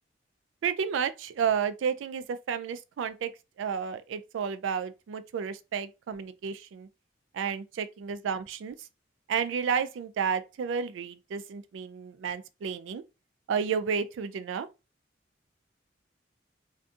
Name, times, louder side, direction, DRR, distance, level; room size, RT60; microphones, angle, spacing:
voice 1, 0.6-3.3 3.6-6.9 7.3-8.8 9.3-13.0 13.5-14.7, right 7 dB, 80° right, 0.3 m, -31 dB
2.5 x 2.3 x 2.5 m
head